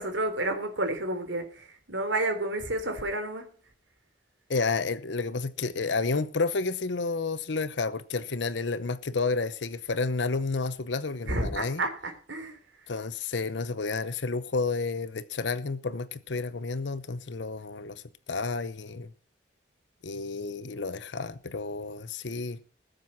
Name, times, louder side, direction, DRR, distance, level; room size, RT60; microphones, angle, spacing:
voice 1, 0.0-3.5 11.3-12.6, right 2 dB, 90° right, 3.4 m, -30 dB
voice 2, 4.5-11.8 12.9-18.0 18.3-19.1 20.0-22.6, left 4 dB, 75° left, 0.8 m, -30 dB
20.0 x 7.7 x 5.9 m
head